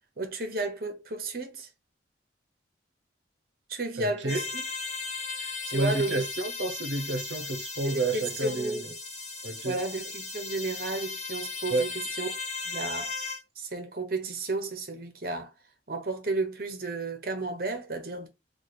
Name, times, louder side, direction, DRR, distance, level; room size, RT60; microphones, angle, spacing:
voice 1, 0.2-1.7 3.7-4.6 5.4-6.2 7.8-9.0 9.6-11.9 12.2-12.3 12.6-13.1 13.6-15.5 15.9-18.3, right 2 dB, 55° right, 0.9 m, -33 dB
voice 2, 4.0-4.4 5.7-8.9 9.4-9.8 11.7-11.9, right 2 dB, 90° right, 0.7 m, -30 dB
sound 1, 4.3-13.4, left 4 dB, 40° left, 1.0 m, -37 dB
3.1 x 2.4 x 4.1 m
head